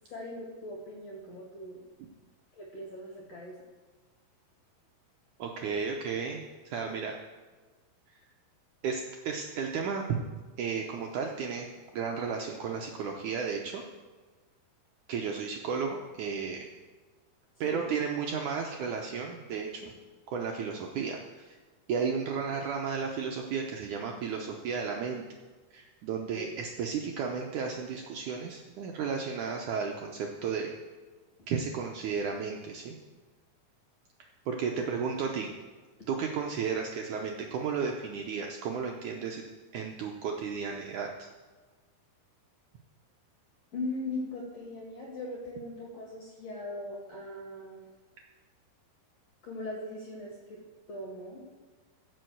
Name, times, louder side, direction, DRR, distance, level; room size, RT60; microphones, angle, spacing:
voice 1, 0.1-1.8 2.5-3.6 17.6-17.9 26.3-26.5 31.4-31.5 34.7-34.9 43.7-47.8 49.4-50.6 50.9-51.4, left 1 dB, 45° left, -2 dB, 2.7 m, -39 dB
voice 2, 5.4-7.2 8.8-10.2 10.6-13.8 15.1-16.7 17.6-19.8 20.3-21.6 21.9-25.3 25.7-30.7 31.5-33.0 34.5-35.5 36.1-39.4 39.7-41.1, right 6 dB, 75° right, 1 dB, 1.9 m, -33 dB
15.5 x 5.7 x 7.8 m, 1.4 s
omnidirectional pair, 4.5 m